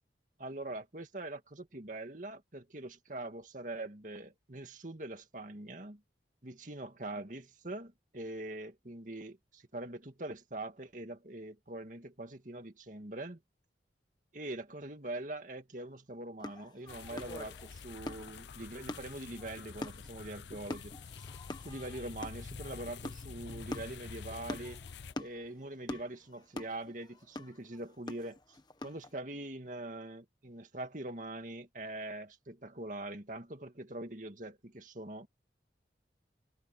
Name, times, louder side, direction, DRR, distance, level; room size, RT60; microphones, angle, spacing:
voice 1, 0.4-6.0 6.4-13.4 14.3-21.3 21.6-24.8 25.2-28.6 28.8-35.3, right 1 dB, 45° right, 2.2 m, -43 dB
sound 1, 16.4-29.1, left 1 dB, 25° left, 1.2 m, -45 dB
sound 2, 16.9-25.1, left 5 dB, 75° left, 0.6 m, -48 dB
head